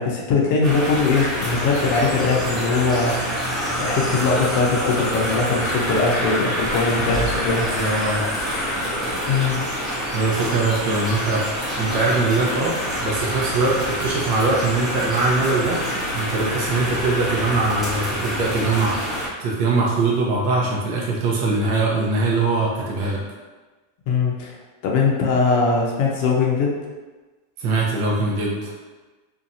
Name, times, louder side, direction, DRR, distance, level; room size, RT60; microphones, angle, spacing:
voice 1, 0.0-3.1 3.8-7.7 9.3-9.6 24.1-24.5 24.8-26.8, left 4 dB, 55° left, -2 dB, 0.5 m, -21 dB
sound 1, 0.6-19.3, equal, 15° right, 0.9 m, -27 dB
sound 2, 2.7-9.6, left 1 dB, 5° left, 0.5 m, -31 dB
voice 2, 7.7-8.5 10.1-12.7 13.0-23.2 27.6-28.7, right 3 dB, 50° right, -3 dB, 0.6 m, -22 dB
2.7 x 2.2 x 2.6 m, 1.3 s
supercardioid pair, 130°, 0 cm